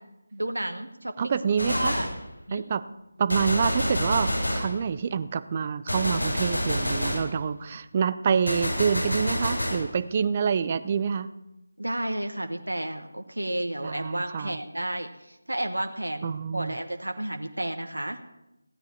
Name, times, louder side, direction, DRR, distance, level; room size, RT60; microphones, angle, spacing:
voice 1, 0.3-1.4 1.7-2.1 2.5-2.7 11.8-18.2, right 1 dB, 80° right, 6 dB, 1.1 m, -32 dB
voice 2, 1.2-1.9 2.5-2.8 3.2-11.3 13.8-14.6 16.2-16.7, right 6 dB, 30° right, 13 dB, 0.6 m, -27 dB
Gunshot gunfire, 1.6-2.2 3.3-4.8 5.9-7.3 8.5-9.9, equal, 80° left, 5.1 m, -28 dB
16.0 x 9.4 x 4.5 m, 0.89 s
figure-of-eight pair, 160°, 0 cm